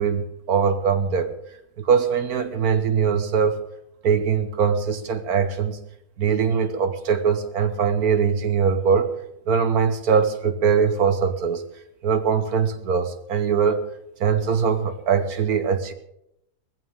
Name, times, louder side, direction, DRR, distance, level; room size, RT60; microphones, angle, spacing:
voice 1, 0.0-1.3 1.8-3.6 4.0-5.8 6.2-9.1 9.5-11.6 12.0-13.8 14.2-15.9, right 6 dB, 75° right, 9 dB, 1.6 m, -21 dB
18.5 x 15.5 x 3.7 m, 0.80 s
omnidirectional pair, 1.6 m